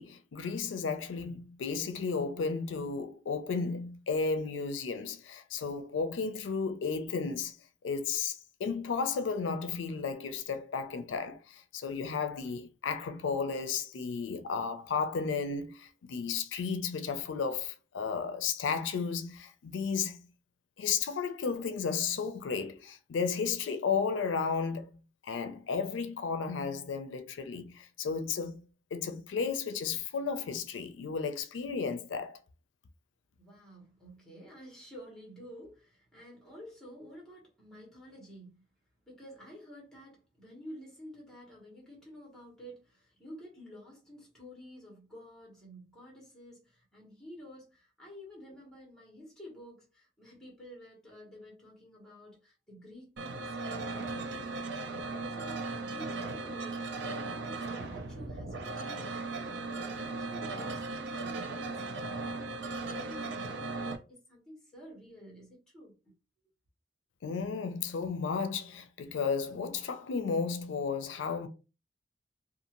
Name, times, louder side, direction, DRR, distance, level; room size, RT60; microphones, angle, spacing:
voice 1, 0.0-7.6 7.8-20.3 20.8-28.6 28.9-32.4 67.2-71.5, left 5 dB, 90° left, 0.4 m, -33 dB
voice 2, 33.4-38.6 39.0-66.1, equal, 5° left, 1.2 m, -51 dB
sound 1, 53.2-64.0, right 3 dB, 65° right, 0.5 m, -37 dB
2.6 x 2.4 x 2.9 m
head